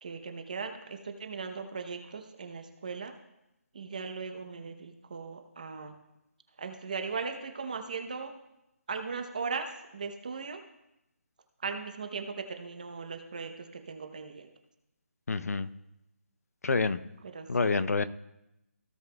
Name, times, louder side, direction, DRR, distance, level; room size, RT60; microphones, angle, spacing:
voice 1, 0.0-3.1 3.7-6.0 6.6-8.3 8.9-10.6 11.6-14.5 17.2-17.7, right 5 dB, 30° right, 6 dB, 0.8 m, -38 dB
voice 2, 15.3-15.7 16.6-17.0 17.5-18.0, left 4 dB, 75° left, 13 dB, 0.6 m, -27 dB
16.0 x 7.0 x 2.3 m, 0.88 s
hypercardioid pair, 175°, 8 cm